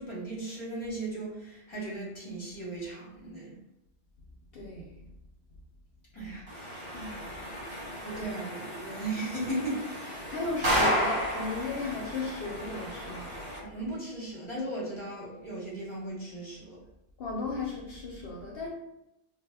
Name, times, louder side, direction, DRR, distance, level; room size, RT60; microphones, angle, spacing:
voice 1, 0.0-3.5 6.1-6.4 8.0-9.9 13.6-16.8, right 2 dB, 30° left, -5 dB, 0.7 m, -36 dB
voice 2, 4.5-4.9 6.9-7.4 10.3-13.3 17.2-18.7, left 3 dB, 65° left, -3 dB, 0.7 m, -35 dB
sound 1, 6.5-13.6, equal, 70° right, 1.2 m, -33 dB
2.1 x 2.0 x 3.4 m, 0.88 s
omnidirectional pair, 1.1 m